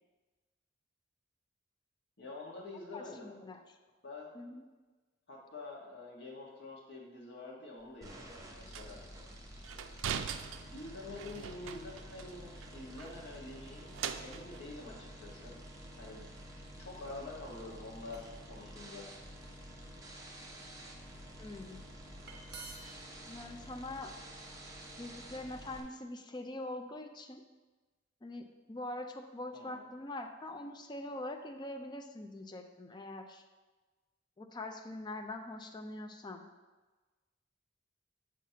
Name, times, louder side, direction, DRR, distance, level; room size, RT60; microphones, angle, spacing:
voice 1, 2.2-3.4 4.0-4.3 5.3-9.0 10.0-15.6 16.0-16.2 16.8-19.1 29.5-29.9, left 2 dB, 60° left, -3 dB, 1.4 m, -47 dB
voice 2, 2.9-3.6 4.3-4.6 21.4-21.9 23.2-24.1 25.0-27.4 28.2-33.4 34.4-36.4, left 2 dB, 20° left, 5 dB, 0.4 m, -43 dB
sound 1, 7.8-7.9 8.7-9.0 9.6-12.3 12.6-12.7 13.0-14.7, right 8 dB, 80° right, 0.4 m, -42 dB
sound 2, 8.0-25.8, equal, 15° right, 0.7 m, -50 dB
sound 3, 17.7-18.5 19.1-19.4 20.0-20.8 22.0-22.1 22.2-23.0, right 3 dB, 55° right, 0.9 m, -50 dB
7.3 x 5.8 x 2.8 m, 1.3 s
head